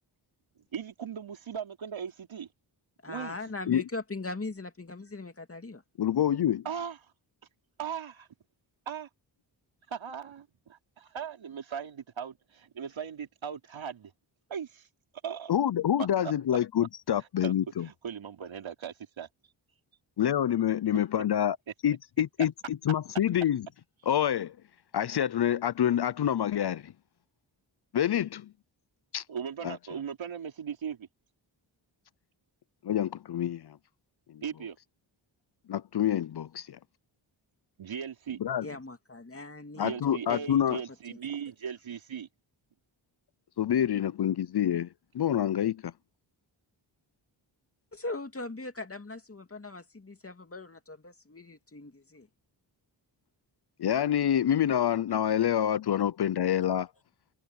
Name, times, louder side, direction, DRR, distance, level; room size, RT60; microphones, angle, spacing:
voice 1, 0.7-2.5 3.1-3.4 6.6-7.1 7.8-8.3 8.9-9.1 9.9-14.1 14.5-14.9 15.2-15.5 16.2-16.6 17.2-17.5 17.8-19.3 29.3-31.1 34.4-34.8 37.8-38.4 39.7-42.3, right 7 dB, 75° right, 3.7 m, -38 dB
voice 2, 3.0-5.8 38.6-40.8 41.1-41.2 47.9-52.3, left 2 dB, 30° left, 2.6 m, -40 dB
voice 3, 6.0-6.6 15.5-17.9 20.2-21.6 21.8-23.6 24.1-24.5 24.9-26.9 27.9-28.5 29.1-29.2 29.6-29.8 32.8-33.8 34.3-34.4 35.7-36.8 38.4-38.7 39.8-40.8 43.6-44.9 45.1-45.9 53.8-56.9, left 10 dB, 55° left, 0.7 m, -27 dB
cardioid pair, 60°, 47 cm